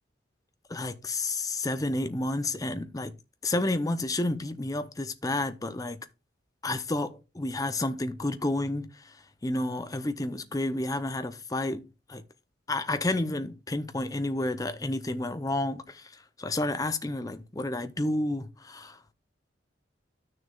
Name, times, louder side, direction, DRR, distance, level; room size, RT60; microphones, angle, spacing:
voice 1, 0.7-3.1 3.4-6.0 6.6-12.2 12.7-19.1, left 2 dB, 20° left, 0.6 m, -31 dB
12.5 x 6.5 x 2.3 m
head